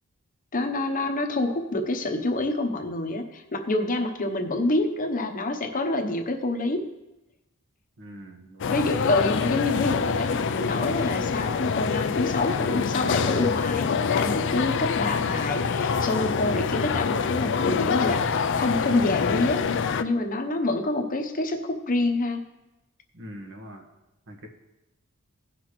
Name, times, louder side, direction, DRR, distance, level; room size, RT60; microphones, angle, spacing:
voice 1, 0.5-6.9 8.7-19.7 20.0-22.4, left 2 dB, 40° left, 5 dB, 0.9 m, -27 dB
voice 2, 8.0-8.9 23.1-23.8 24.3-24.5, equal, 60° right, 1 dB, 1.6 m, -43 dB
sound 1, 8.6-20.0, left 5 dB, 55° left, 0.5 m, -25 dB
17.0 x 5.9 x 3.2 m, 0.99 s
head